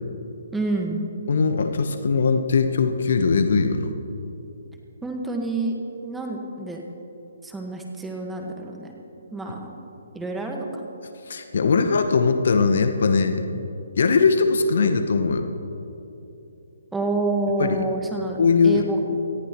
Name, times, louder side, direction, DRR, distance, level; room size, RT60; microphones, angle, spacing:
voice 1, 0.5-1.0 5.0-5.7 6.0-6.8 7.4-8.9 9.3-9.8 10.1-10.8 16.9-18.4 18.6-19.0, right 2 dB, 5° right, 0 dB, 1.4 m, -28 dB
voice 2, 1.3-3.9 11.3-13.5 14.0-15.5 17.6-17.8 18.4-19.0, left 4 dB, 65° left, 7 dB, 1.0 m, -20 dB
18.0 x 14.0 x 3.0 m, 2.8 s
hypercardioid pair, 145°, 0 cm